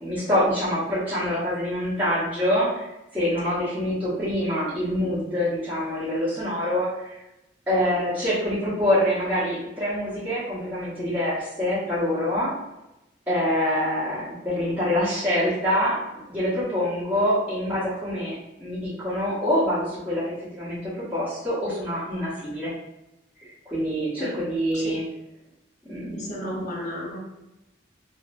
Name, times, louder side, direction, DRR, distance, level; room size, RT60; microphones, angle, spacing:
voice 1, 0.0-2.9 3.1-7.2 7.7-12.5 13.3-16.0 16.3-22.7 23.6-25.0 25.9-26.6, equal, 10° right, -13 dB, 1.1 m, -25 dB
voice 2, 26.1-27.2, equal, 40° left, -4 dB, 1.0 m, -33 dB
3.7 x 2.0 x 2.6 m, 0.93 s
head